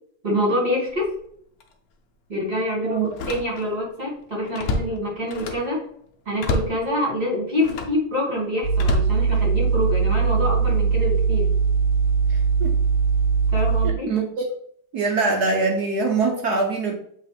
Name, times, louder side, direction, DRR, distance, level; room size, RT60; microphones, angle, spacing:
voice 1, 0.2-1.1 2.3-5.8 6.3-11.5 13.5-14.1, left 1 dB, 30° right, -3 dB, 2.5 m, -26 dB
Slam, 0.9-1.2 1.6-1.7 3.0-3.9 4.2-5.8 6.4-6.8 7.6-8.0 8.7-9.8 10.4-10.7, left 2 dB, 65° left, 0.9 m, -29 dB
voice 2, 2.8-3.2 12.3-12.8 13.8-14.5 14.9-16.9, right 3 dB, 60° right, 1 dB, 1.1 m, -24 dB
sound 1, 8.6-13.9, right 5 dB, 85° right, 1.5 m, -20 dB
8.0 x 3.7 x 3.4 m, 0.65 s
omnidirectional pair, 2.4 m